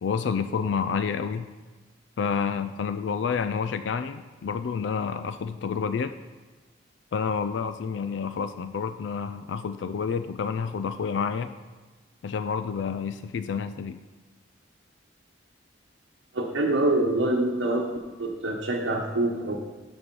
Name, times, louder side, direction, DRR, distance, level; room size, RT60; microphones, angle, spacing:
voice 1, 0.0-1.5 2.2-6.1 7.1-11.5 12.2-14.0, left 6 dB, 70° left, 11 dB, 0.3 m, -29 dB
voice 2, 16.3-17.9 18.2-19.5, right 2 dB, 80° right, -3 dB, 1.0 m, -25 dB
6.9 x 6.2 x 5.3 m, 1.3 s
head